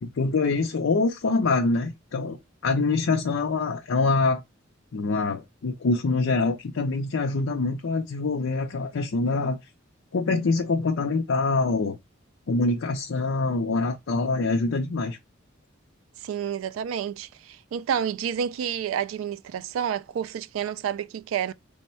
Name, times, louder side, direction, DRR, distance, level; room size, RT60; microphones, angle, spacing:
voice 1, 0.0-2.4 2.6-4.4 4.9-9.6 10.1-12.0 12.5-15.2, left 3 dB, 80° left, 0.5 m, -25 dB
voice 2, 16.2-21.5, right 8 dB, 90° right, 0.3 m, -29 dB
3.4 x 2.1 x 4.2 m
head